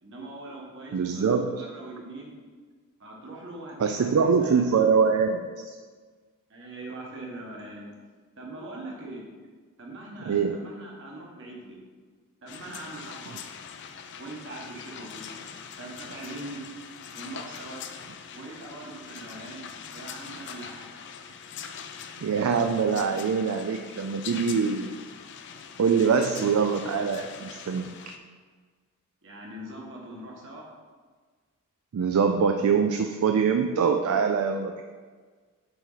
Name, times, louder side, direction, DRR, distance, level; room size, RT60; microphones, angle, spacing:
voice 1, 0.0-2.4 3.0-4.8 6.5-7.9 8.4-9.2 9.8-11.8 12.4-13.3 14.2-15.2 15.8-16.6 17.1-17.8 18.3-20.9 29.2-30.7, right 2 dB, 60° right, -2 dB, 1.3 m, -42 dB
voice 2, 0.9-1.7 3.8-5.7 10.3-10.6 22.2-24.9 25.8-27.9 31.9-34.8, right 6 dB, 75° right, 5 dB, 0.4 m, -24 dB
sound 1, 12.5-28.2, left 7 dB, 55° left, 0.4 m, -42 dB
6.8 x 4.5 x 3.9 m, 1.5 s
head